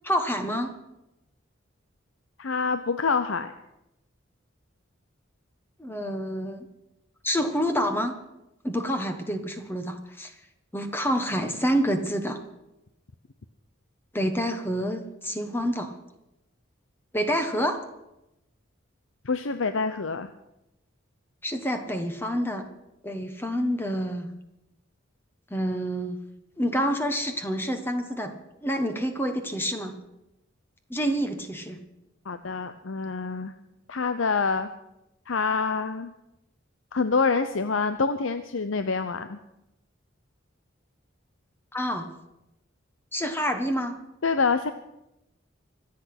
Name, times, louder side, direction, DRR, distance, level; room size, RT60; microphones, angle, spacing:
voice 1, 0.0-0.7 5.8-6.7 7.2-8.2 8.6-10.3 10.7-12.4 14.1-16.0 17.1-17.8 21.4-22.7 23.0-24.3 25.5-26.2 26.6-28.3 28.6-30.0 30.9-31.8 41.7-42.1 43.1-44.0, equal, 10° left, 6 dB, 1.2 m, -28 dB
voice 2, 2.4-3.5 19.2-20.3 32.3-33.5 33.9-34.7 35.3-36.1 36.9-39.4 44.2-44.7, left 4 dB, 85° left, 10 dB, 0.7 m, -26 dB
25.0 x 8.5 x 6.0 m, 0.89 s
head